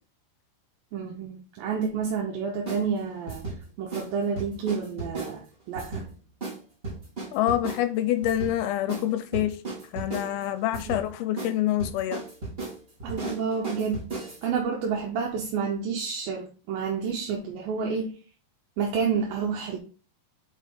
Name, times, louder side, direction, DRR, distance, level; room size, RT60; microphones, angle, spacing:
voice 1, 0.9-3.4 3.8-6.1 10.8-10.9 13.0-14.0 14.4-18.1 18.8-19.8, right 6 dB, 75° right, 2.6 m, -29 dB
sound 1, 2.7-2.8 3.3-3.6 3.9-4.1 4.3-5.3 5.7-6.1 6.4-6.6 6.8-7.8 8.2-8.5 8.9-9.1 9.3-10.3 10.7-11.0 11.4-11.5 11.8-14.4, right 3 dB, 25° right, 1.3 m, -35 dB
voice 2, 7.3-9.6 9.9-12.2, left 12 dB, 80° left, 2.4 m, -26 dB
5.6 x 4.9 x 4.8 m
omnidirectional pair, 4.6 m